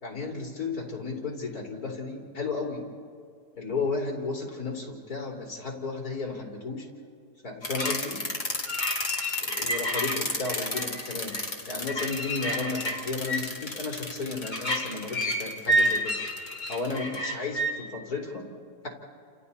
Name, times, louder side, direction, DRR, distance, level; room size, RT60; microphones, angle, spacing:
voice 1, 0.0-2.8 3.6-6.9 7.4-8.2 9.4-11.3 11.7-16.1 16.7-18.4, left 4 dB, 60° left, -1 dB, 4.0 m, -33 dB
sound 1, 7.6-17.7, equal, 25° left, 2.4 m, -29 dB
30.0 x 28.5 x 4.3 m, 2.2 s
omnidirectional pair, 1.8 m